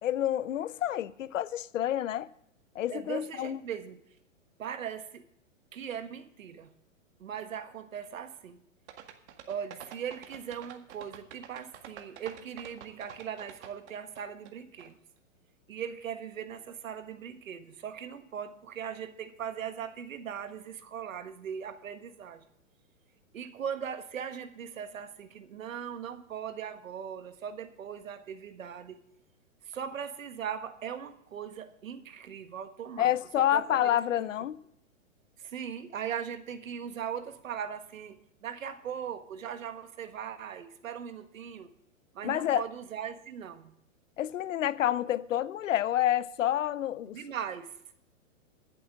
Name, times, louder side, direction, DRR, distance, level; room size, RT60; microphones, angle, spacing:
voice 1, 0.0-2.3 2.7-3.6 33.0-34.6 42.2-42.6 44.2-47.2, left 12 dB, 75° left, 0.7 m, -28 dB
voice 2, 2.9-4.0 4.6-5.2 5.7-6.7 7.2-8.6 9.5-14.9 15.7-22.4 23.3-29.0 29.6-34.0 35.4-41.7 42.1-43.7 47.1-47.7, right 8 dB, 80° right, 1.6 m, -39 dB
sound 1, 8.9-14.5 14.8-14.9, right 10 dB, 60° right, 1.9 m, -47 dB
21.0 x 7.8 x 3.7 m
hypercardioid pair, 135°, 39 cm